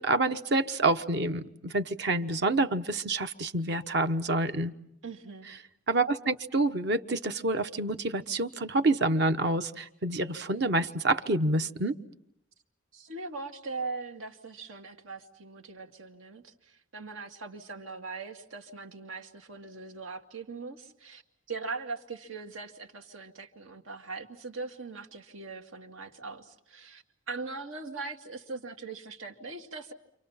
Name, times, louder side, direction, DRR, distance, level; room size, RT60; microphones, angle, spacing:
voice 1, 0.0-4.7 5.9-12.0, right 2 dB, 55° right, 9 dB, 1.1 m, -27 dB
voice 2, 5.0-5.5 12.9-21.2 21.5-29.9, right 4 dB, 85° right, 4 dB, 2.3 m, -40 dB
29.5 x 27.0 x 5.8 m, 0.77 s
head